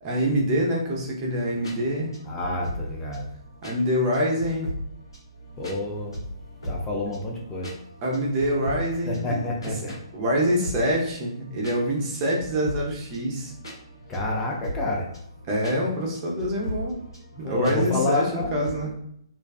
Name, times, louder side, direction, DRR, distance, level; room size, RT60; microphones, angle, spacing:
voice 1, 0.0-2.2 3.6-4.7 8.0-9.4 10.1-13.5 15.5-17.0 17.4-18.9, equal, 30° right, -2 dB, 0.7 m, -25 dB
sound 1, 1.3-18.7, equal, 75° left, 1.1 m, -39 dB
voice 2, 2.3-3.3 5.6-6.2 6.6-7.7 9.1-9.9 14.1-15.0 17.4-18.9, left 2 dB, 15° left, -2 dB, 0.5 m, -28 dB
2.5 x 2.2 x 2.3 m, 0.72 s
figure-of-eight pair, 130°, 3 cm